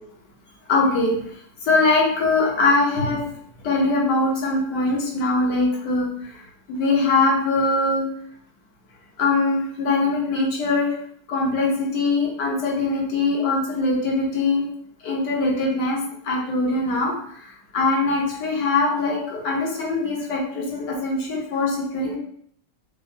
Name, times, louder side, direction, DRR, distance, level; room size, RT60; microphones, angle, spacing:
voice 1, 0.7-1.2 1.6-3.2 3.6-6.1 6.7-8.0 9.2-10.9 11.3-14.6 15.0-17.2 17.7-22.2, left 3 dB, 70° left, -2 dB, 1.5 m, -22 dB
5.3 x 2.1 x 2.6 m, 0.64 s
omnidirectional pair, 1.9 m